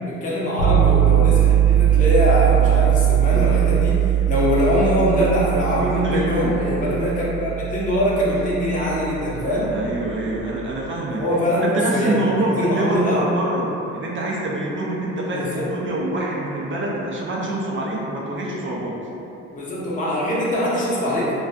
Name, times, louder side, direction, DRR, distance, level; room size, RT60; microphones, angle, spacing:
voice 1, 0.1-9.7 11.2-13.2 15.3-15.6 19.5-21.3, left 1 dB, 25° left, -8 dB, 0.6 m, -22 dB
sound 1, 0.6-10.5, right 11 dB, 80° left, 0.6 m, -20 dB
voice 2, 5.8-6.5 9.7-11.2 11.6-19.0, right 1 dB, 40° right, -3 dB, 0.5 m, -25 dB
2.3 x 2.3 x 2.5 m, 2.8 s
cardioid pair, 90°, 30 cm